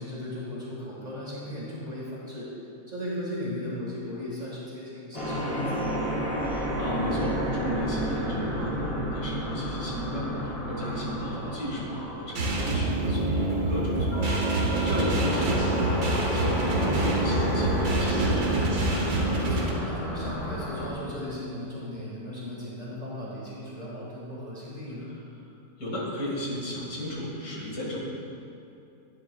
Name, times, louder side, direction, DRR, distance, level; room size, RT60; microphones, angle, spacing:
voice 1, 0.0-2.5 2.9-5.9 11.2-11.5 15.6-15.7 19.3-25.1, left 1 dB, 25° right, -7 dB, 1.8 m, -37 dB
sound 1, 5.1-20.9, equal, 20° left, 1.3 m, -31 dB
voice 2, 6.4-18.5 25.0-25.1 25.8-28.0, left 1 dB, 60° left, -4 dB, 2.3 m, -35 dB
sound 2, 12.4-19.7, right 2 dB, 65° right, 1.6 m, -26 dB
10.5 x 10.0 x 2.3 m, 2.7 s
omnidirectional pair, 1.8 m